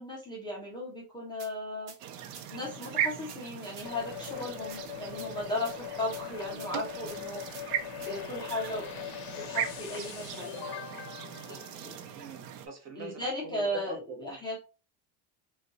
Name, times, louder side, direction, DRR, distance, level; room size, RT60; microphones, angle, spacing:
voice 1, 0.0-1.9 2.5-7.7 8.0-11.1 11.5-11.6 11.8-11.9 13.0-14.6, left 1 dB, 10° left, 0.3 m, -36 dB
sound 1, 1.4-1.5 1.9-2.0 2.3-2.4 2.8-2.9 3.3-3.9 4.2-4.3 4.7-5.3 5.6-5.8 6.1-6.2 6.6-6.7 7.1-7.6 8.0-8.1 8.5-8.7, right 6 dB, 65° right, 1.0 m, -48 dB
sound 2, 2.0-12.7, right 9 dB, 80° right, 0.7 m, -39 dB
sound 3, 3.8-12.5, left 11 dB, 50° left, 0.6 m, -42 dB
voice 2, 11.5-14.4, right 3 dB, 35° right, 0.8 m, -44 dB
3.7 x 2.3 x 2.5 m
supercardioid pair, 140°, 47 cm